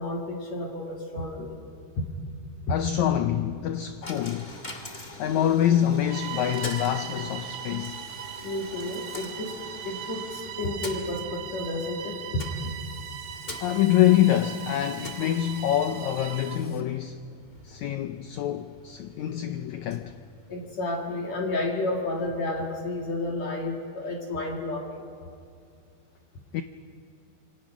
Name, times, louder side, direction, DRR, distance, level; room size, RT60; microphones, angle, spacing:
voice 1, 0.0-1.6 2.7-2.8 8.4-9.5 9.8-12.4 20.5-25.0, left 2 dB, 50° left, 3.1 m, -31 dB
voice 2, 2.7-4.5 5.2-8.0 13.6-17.2 17.6-20.1 26.5-26.6, left 11 dB, 85° left, 1.6 m, -25 dB
Coin (dropping), 4.0-21.0, left 2 dB, 25° left, 0.9 m, -44 dB
Bowed string instrument, 6.0-16.7, right 10 dB, 85° right, 2.8 m, -39 dB
27.0 x 25.0 x 6.1 m
omnidirectional pair, 4.2 m